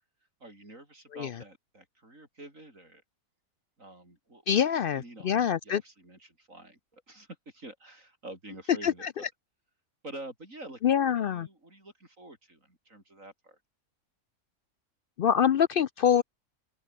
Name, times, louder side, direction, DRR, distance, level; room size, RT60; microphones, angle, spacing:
voice 1, 0.4-3.0 3.8-9.3 10.0-13.6, right 2 dB, 60° right, 7.7 m, -48 dB
voice 2, 4.5-5.8 8.8-8.9 10.8-11.5 15.2-16.2, left 8 dB, 80° left, 0.4 m, -25 dB
open air
omnidirectional pair, 1.6 m